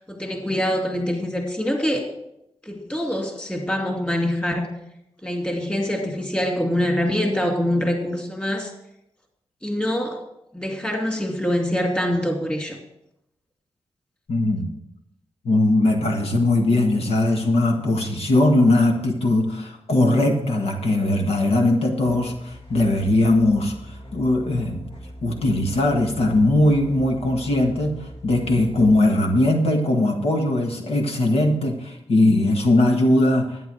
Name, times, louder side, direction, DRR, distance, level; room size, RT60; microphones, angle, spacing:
voice 1, 0.1-2.1 2.7-4.7 5.2-8.7 9.6-10.2 10.5-12.8, left 1 dB, 10° left, 2 dB, 2.5 m, -24 dB
voice 2, 14.3-14.7 15.4-24.9 25.2-33.6, left 1 dB, 75° left, 3 dB, 1.6 m, -20 dB
sound 1, 22.0-29.0, equal, 60° left, 2.3 m, -41 dB
11.5 x 9.3 x 4.7 m, 0.81 s
cardioid pair, 85°, 10 cm